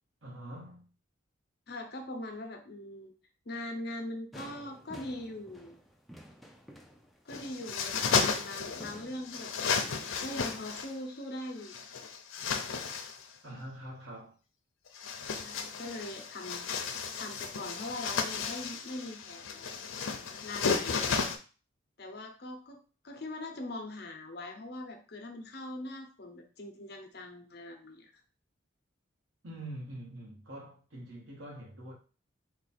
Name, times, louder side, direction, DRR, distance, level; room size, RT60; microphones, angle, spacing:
voice 1, 0.2-0.9 13.4-14.3 29.4-31.9, right 1 dB, 70° right, 1.2 m, -44 dB
voice 2, 1.7-3.1 3.5-5.8 7.2-11.7 15.4-19.7 20.4-21.1 22.0-22.8 23.0-28.1, left 1 dB, 50° left, 0.7 m, -42 dB
sound 1, 4.3-10.2, equal, ahead, 0.3 m, -52 dB
sound 2, 7.3-9.0 9.3-10.9 11.6-13.2 14.9-21.4, left 5 dB, 85° left, 0.6 m, -33 dB
4.0 x 2.4 x 4.2 m
head